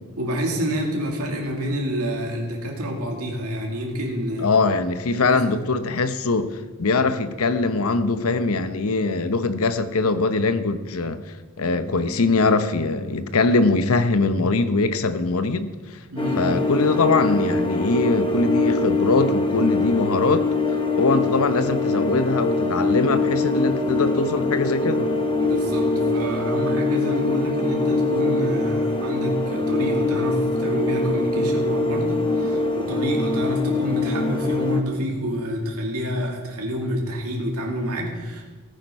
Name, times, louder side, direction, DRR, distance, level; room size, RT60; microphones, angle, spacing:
voice 1, 0.2-4.5 5.1-5.4 16.1-16.5 25.4-38.4, equal, 90° right, 2.3 m, -28 dB
voice 2, 4.4-11.2 11.6-15.7 16.4-20.5 21.0-25.2, left 3 dB, 75° left, 0.8 m, -22 dB
sound 1, 16.2-34.8, left 2 dB, 25° left, 0.9 m, -23 dB
15.5 x 9.2 x 5.4 m
head